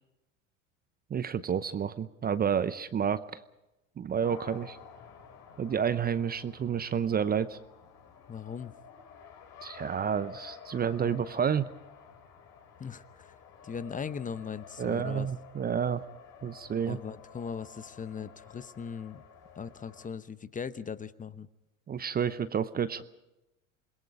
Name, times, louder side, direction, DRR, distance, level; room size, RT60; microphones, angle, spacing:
voice 1, 1.1-3.2 4.0-4.8 5.6-7.6 9.6-11.6 14.8-16.0 16.4-17.0 21.9-23.0, right 7 dB, 25° right, 14 dB, 0.8 m, -30 dB
Race car auto racing, 4.2-20.1, left 7 dB, 45° left, 5.0 m, -51 dB
voice 2, 8.3-8.7 12.8-13.3 13.6-15.3 16.9-19.2 19.6-21.5, left 6 dB, 20° left, 14 dB, 0.9 m, -39 dB
28.0 x 21.5 x 4.9 m, 0.96 s
hypercardioid pair, 80°, 40 cm